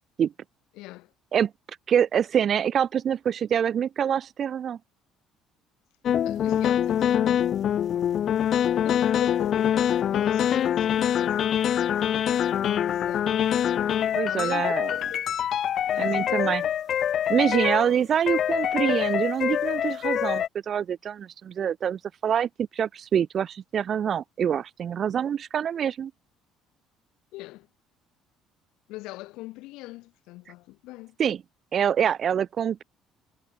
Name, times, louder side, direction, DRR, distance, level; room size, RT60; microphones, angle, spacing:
voice 1, 0.7-1.1 6.2-7.6 7.9-12.1 12.6-13.4 14.3-15.3 15.9-16.7 27.3-27.7 28.9-31.2, left 20 dB, 80° left, 3.2 m, -41 dB
voice 2, 1.9-4.8 14.1-14.9 16.0-16.6 17.3-26.1 31.2-31.4 31.7-32.8, right 8 dB, 35° right, 1.0 m, -25 dB
sound 1, 6.0-18.0 18.3-20.5, left 10 dB, 40° left, 0.4 m, -25 dB
cardioid pair, 160°, 0 cm